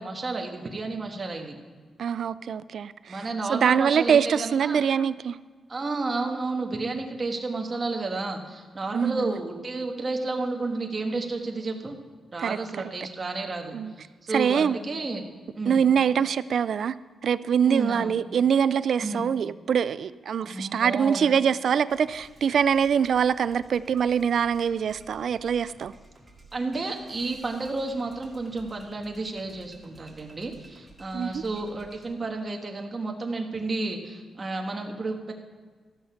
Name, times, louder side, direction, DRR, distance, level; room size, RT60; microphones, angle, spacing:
voice 1, 0.0-1.6 3.1-4.8 5.7-12.0 12.3-15.2 15.5-15.8 17.7-18.1 19.0-19.3 20.4-21.3 26.5-35.3, right 3 dB, 30° right, 3 dB, 1.3 m, -31 dB
voice 2, 2.0-5.4 8.9-9.3 12.4-12.6 13.7-13.9 14.3-14.8 15.7-16.9 17.2-25.9 31.1-31.4, right 7 dB, 65° right, 15 dB, 0.3 m, -24 dB
sound 1, 21.9-32.1, right 2 dB, 15° right, 2.2 m, -53 dB
14.5 x 6.6 x 5.7 m, 1.5 s
wide cardioid pair, 130°, 0 cm